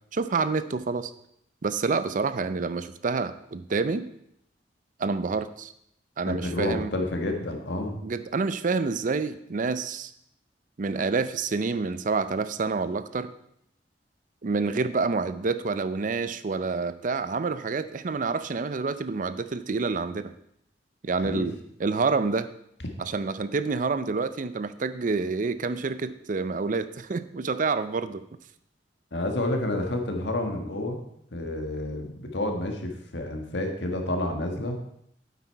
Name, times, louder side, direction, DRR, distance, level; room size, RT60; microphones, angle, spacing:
voice 1, 0.1-1.1 1.6-4.1 5.0-5.7 6.2-6.9 8.0-10.1 10.8-13.3 14.4-20.3 21.0-22.5 23.0-28.2, right 4 dB, 50° right, 13 dB, 0.5 m, -28 dB
voice 2, 6.3-8.0 21.2-21.5 29.1-31.0 31.3-34.8, left 1 dB, 85° left, 4 dB, 1.6 m, -29 dB
8.5 x 8.2 x 4.5 m, 0.75 s
head